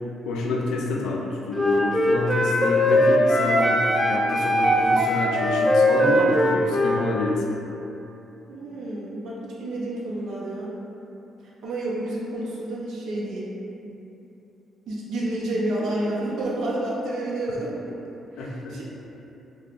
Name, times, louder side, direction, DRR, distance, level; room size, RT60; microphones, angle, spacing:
voice 1, 0.3-7.4 18.4-18.7, left 2 dB, 85° left, -1 dB, 0.3 m, -27 dB
Wind instrument woodwind instrument, 1.5-7.0, equal, 5° right, 0.3 m, -20 dB
voice 2, 8.5-10.8 11.6-13.5 14.9-17.8 18.3-18.8, right 1 dB, 80° right, -6 dB, 0.6 m, -29 dB
2.4 x 2.2 x 3.3 m, 3.0 s
cardioid pair, 90°, 0 cm